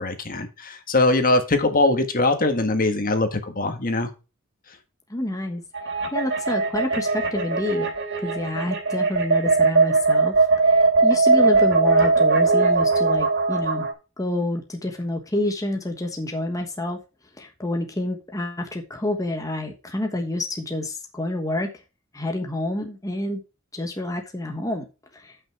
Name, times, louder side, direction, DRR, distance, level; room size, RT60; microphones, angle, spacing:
voice 1, 0.0-4.1, left 2 dB, 45° left, 7 dB, 1.5 m, -22 dB
voice 2, 5.1-5.6 6.1-7.9 8.2-13.9 14.2-17.0 17.4-21.7 22.1-23.4 23.7-24.8 25.1-25.3, left 1 dB, 15° left, 3 dB, 1.2 m, -28 dB
sound 1, 5.7-13.9, right 3 dB, 60° right, 2.8 m, -20 dB
8.9 x 6.0 x 4.6 m, 0.29 s
head